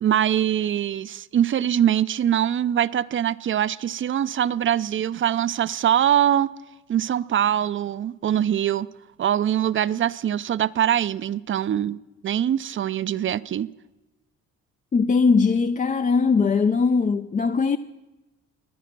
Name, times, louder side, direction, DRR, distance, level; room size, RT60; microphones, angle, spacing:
voice 1, 0.0-6.5 6.9-8.9 9.2-13.7, right 10 dB, 40° right, 0.5 m, -23 dB
voice 2, 14.9-17.8, left 5 dB, 25° left, 0.4 m, -20 dB
23.5 x 9.3 x 6.0 m
cardioid pair, 90°, 30 cm